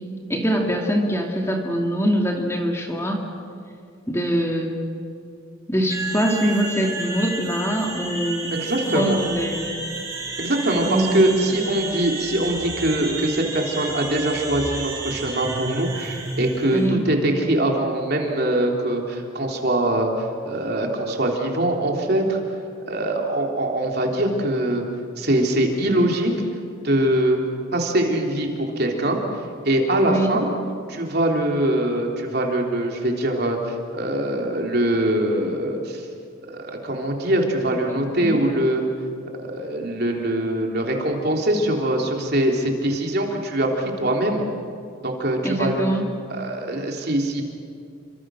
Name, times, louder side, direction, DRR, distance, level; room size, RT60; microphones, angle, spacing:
voice 1, 0.3-3.2 4.1-4.8 5.7-8.5 8.9-9.7 10.9-11.3 16.7-17.0 30.0-30.4 38.2-38.4 45.4-46.1, equal, 15° left, 1 dB, 2.4 m, -23 dB
sound 1, 5.9-16.9, right 3 dB, 15° right, 4.9 m, -31 dB
voice 2, 8.5-9.2 10.4-20.1 20.5-22.4 22.9-24.8 25.2-26.3 26.8-27.4 27.7-29.2 29.6-30.5 30.9-36.1 36.5-38.8 39.3-44.4 45.0-45.8 46.3-47.4, right 1 dB, 50° right, 1 dB, 3.6 m, -23 dB
29.5 x 25.5 x 6.5 m, 2.5 s
head